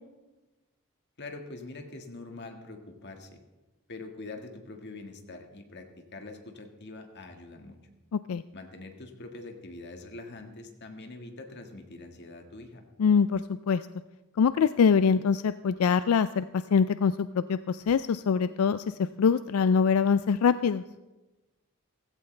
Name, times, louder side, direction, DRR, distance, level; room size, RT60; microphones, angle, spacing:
voice 1, 1.2-3.3 3.9-7.8 8.5-12.8, left 2 dB, 55° left, 4 dB, 1.7 m, -44 dB
voice 2, 8.1-8.4 13.0-13.8 14.4-16.5 16.7-20.8, left 6 dB, 85° left, 13 dB, 0.4 m, -24 dB
16.0 x 15.5 x 3.3 m, 1.1 s
head